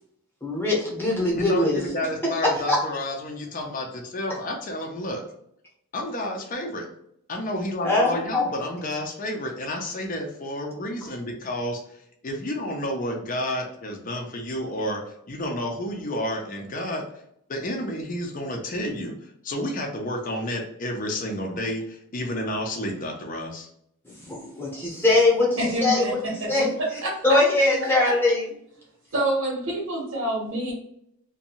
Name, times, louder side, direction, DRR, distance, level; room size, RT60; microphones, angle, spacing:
voice 1, 0.4-1.8 2.7-2.8 7.8-8.5 24.2-26.2 26.5-26.7 27.2-28.4, left 2 dB, 10° left, -5 dB, 0.8 m, -22 dB
voice 2, 1.3-5.2 5.9-6.9 7.3-15.0 15.3-17.0 17.5-23.7, left 1 dB, 40° left, 1 dB, 0.5 m, -30 dB
voice 3, 25.6-26.7 27.0-27.4 28.0-28.1 29.1-30.7, right 1 dB, 75° right, -4 dB, 0.9 m, -27 dB
2.6 x 2.2 x 2.8 m, 0.73 s
head